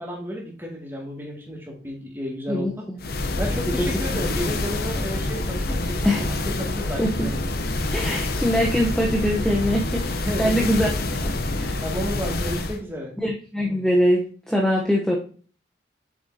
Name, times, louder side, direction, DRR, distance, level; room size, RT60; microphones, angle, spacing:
voice 1, 0.0-2.7 3.4-6.1 6.6-7.3 10.2-10.5 11.8-13.1, equal, 10° right, -3 dB, 2.1 m, -32 dB
voice 2, 2.5-3.0 3.8-3.9 6.0-6.3 7.0-7.3 7.9-11.3 11.6-11.8 13.2-15.2, equal, 5° left, -2 dB, 0.8 m, -23 dB
sound 1, 3.0-12.8, left 2 dB, 55° left, 0.7 m, -27 dB
7.5 x 5.6 x 2.7 m, 0.42 s
head